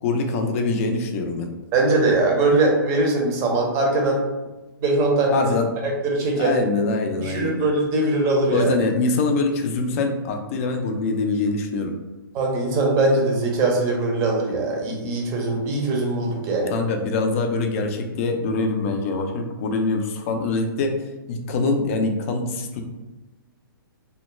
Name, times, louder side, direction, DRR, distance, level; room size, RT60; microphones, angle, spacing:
voice 1, 0.0-1.5 5.3-5.7 6.4-7.6 8.5-11.9 16.7-20.9 21.3-22.8, left 3 dB, 40° left, 4 dB, 0.4 m, -24 dB
voice 2, 1.7-4.2 4.8-5.4 6.0-6.5 7.2-8.7 12.3-16.7, right 2 dB, 25° right, -1 dB, 0.6 m, -21 dB
2.2 x 2.1 x 3.0 m, 1.1 s
hypercardioid pair, 140°, 12 cm